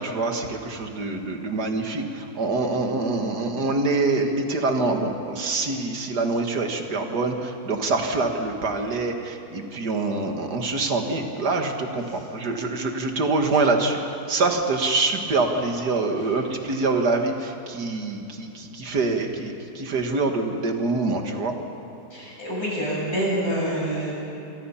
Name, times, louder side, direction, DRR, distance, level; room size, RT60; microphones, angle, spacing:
voice 1, 0.0-14.0 14.3-21.5, right 3 dB, 80° right, 4 dB, 2.5 m, -25 dB
voice 2, 22.1-24.1, right 1 dB, 65° left, -5 dB, 8.5 m, -27 dB
27.0 x 24.5 x 5.8 m, 2.9 s
omnidirectional pair, 1.7 m